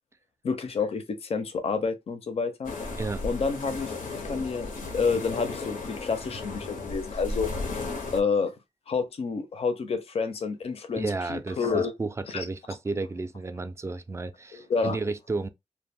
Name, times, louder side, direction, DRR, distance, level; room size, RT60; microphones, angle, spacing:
voice 1, 0.4-2.7 3.2-3.9 4.2-7.5 8.1-8.5 8.9-11.9 12.3-12.5 14.5-15.0, left 5 dB, 50° left, 0.5 m, -29 dB
sound 1, 2.6-8.2, left 3 dB, 85° left, 0.7 m, -35 dB
voice 2, 10.9-15.5, right 3 dB, 20° right, 0.3 m, -32 dB
2.1 x 2.1 x 3.4 m
cardioid pair, 70°, 13 cm